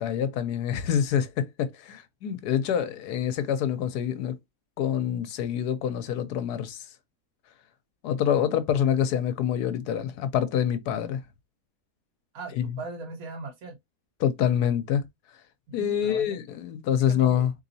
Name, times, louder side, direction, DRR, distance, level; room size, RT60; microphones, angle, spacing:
voice 1, 0.0-4.3 4.8-6.8 8.0-11.2 12.5-12.8 14.2-15.0 15.7-17.5, left 9 dB, 85° left, 1.2 m, -26 dB
voice 2, 12.3-13.8 15.7-16.4 17.1-17.5, right 3 dB, 65° right, 1.3 m, -39 dB
3.9 x 3.3 x 2.6 m
omnidirectional pair, 1.7 m